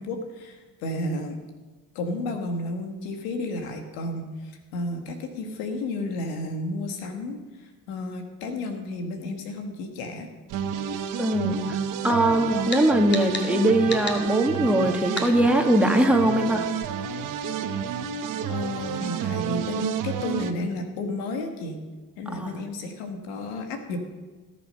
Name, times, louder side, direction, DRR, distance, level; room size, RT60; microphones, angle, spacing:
voice 1, 0.0-1.4 2.0-10.3 18.5-21.8 22.2-24.0, left 2 dB, 85° left, 5 dB, 1.7 m, -32 dB
sound 1, 10.5-20.5, right 8 dB, 65° right, 1.1 m, -30 dB
voice 2, 11.2-11.8 12.0-16.7 22.3-22.6, right 1 dB, 5° right, 3 dB, 2.0 m, -21 dB
sound 2, 12.7-12.8 13.1-13.5 13.9-14.2 15.2-15.3, left 2 dB, 30° left, 2.3 m, -31 dB
18.5 x 7.0 x 5.6 m, 1.3 s
supercardioid pair, 70°, 34 cm